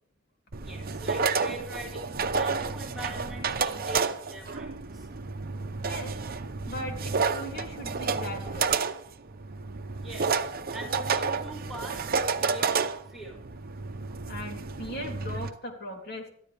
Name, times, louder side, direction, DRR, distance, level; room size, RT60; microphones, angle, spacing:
sound 1, 0.5-15.5, right 5 dB, 45° right, 0.8 m, -30 dB
voice 1, 0.6-5.1 10.0-10.4 10.7-12.1 12.4-12.8 13.1-13.4, right 1 dB, ahead, -4 dB, 5.2 m, -43 dB
voice 2, 6.7-8.8 14.3-16.3, left 1 dB, 50° left, 1 dB, 3.4 m, -39 dB
22.0 x 14.0 x 3.5 m, 0.63 s
head